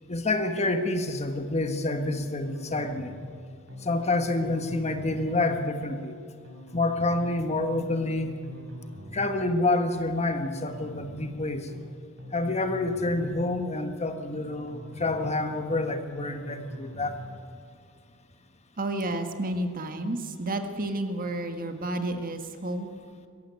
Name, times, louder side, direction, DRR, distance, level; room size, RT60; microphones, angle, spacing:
voice 1, 0.1-3.1 3.8-6.2 6.7-8.3 9.1-11.7 12.3-17.2, left 2 dB, 30° left, 7 dB, 1.4 m, -28 dB
sound 1, 2.4-3.4 3.7-3.9 4.2-5.4 6.4-7.4 7.7-7.9 8.2-9.4 10.4-11.4 11.7-11.9 12.2-13.4 14.4-15.4 15.7-15.9 16.2-17.4, left 1 dB, 60° right, 5.2 m, -43 dB
voice 2, 18.8-22.9, right 1 dB, 40° right, 6 dB, 1.7 m, -31 dB
22.5 x 15.5 x 9.5 m, 2.2 s
head